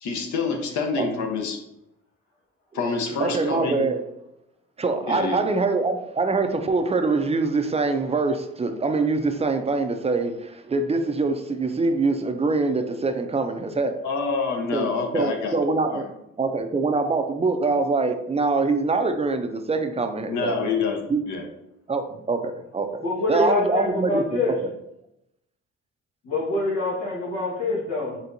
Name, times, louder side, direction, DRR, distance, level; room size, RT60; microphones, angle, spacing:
voice 1, 0.0-1.6 2.7-3.9 5.1-5.4 14.0-15.6 15.9-16.0 20.3-21.0 21.3-21.4, left 4 dB, 70° left, 3 dB, 0.9 m, -27 dB
voice 2, 3.2-4.0 4.8-14.0 14.7-14.9 15.1-16.1 16.4-20.7 21.1-21.2 21.9-23.0 23.3-24.4, right 3 dB, 20° right, 7 dB, 0.4 m, -24 dB
voice 3, 23.0-24.6 26.2-28.2, left 2 dB, 90° left, -3 dB, 1.4 m, -25 dB
4.3 x 3.6 x 2.6 m, 0.84 s
cardioid pair, 90°, 30 cm